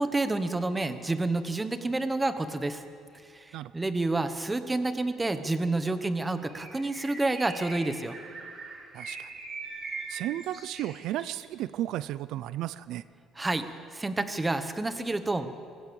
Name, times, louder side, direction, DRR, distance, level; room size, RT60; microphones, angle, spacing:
voice 1, 0.0-2.8 3.3-8.1 13.4-13.7 13.9-15.5, right 2 dB, 10° right, 10 dB, 1.1 m, -29 dB
Bird, 6.5-11.4, right 3 dB, 35° right, 4.3 m, -41 dB
voice 2, 8.9-9.3 10.1-13.0, right 13 dB, 75° right, 16 dB, 0.5 m, -34 dB
24.5 x 15.5 x 7.0 m, 2.4 s
cardioid pair, 145°, 0 cm